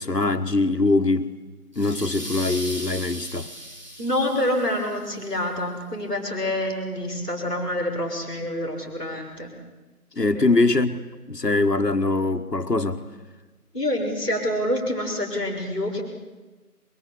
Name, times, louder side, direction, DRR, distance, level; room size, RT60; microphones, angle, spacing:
voice 1, 0.0-1.3 1.8-3.5 10.2-11.0 11.3-13.0, left 3 dB, 85° left, 1.7 m, -22 dB
sound 1, 1.7-5.2, equal, 30° right, 3.4 m, -38 dB
voice 2, 4.0-9.5 10.3-10.4 13.7-16.0, left 1 dB, 5° left, 4.2 m, -27 dB
23.5 x 22.5 x 8.4 m
figure-of-eight pair, 170°, 47 cm